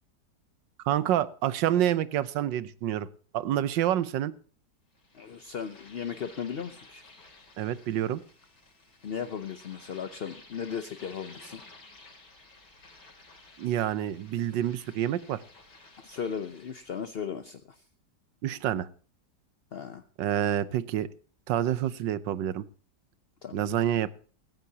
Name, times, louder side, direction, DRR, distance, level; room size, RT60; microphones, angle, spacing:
voice 1, 0.8-3.1 3.3-4.3 7.6-8.2 13.6-15.4 18.4-18.9 20.2-21.1 21.5-22.6 23.5-24.1, right 11 dB, 85° right, 16 dB, 1.5 m, -28 dB
sound 1, 4.9-17.2, left 3 dB, 70° left, 3.7 m, -54 dB
voice 2, 5.1-7.0 9.0-11.6 16.0-17.8 19.7-20.0 23.4-23.7, left 7 dB, 50° left, 9 dB, 0.7 m, -36 dB
17.0 x 15.0 x 2.8 m, 0.40 s
omnidirectional pair, 1.9 m